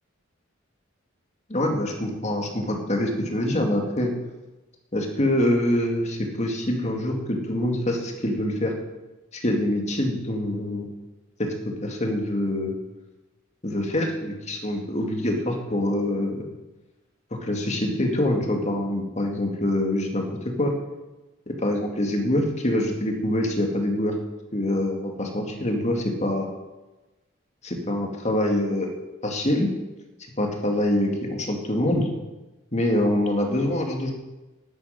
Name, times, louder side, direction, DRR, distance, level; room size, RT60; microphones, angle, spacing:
voice 1, 1.5-4.1 4.9-8.7 9.3-10.9 11.4-12.8 13.6-16.5 17.3-20.7 21.5-24.2 24.5-26.5 27.6-28.9 29.2-29.7 30.4-32.1 32.7-34.1, left 1 dB, 35° left, 2 dB, 2.3 m, -25 dB
11.0 x 8.8 x 9.4 m, 1.1 s
head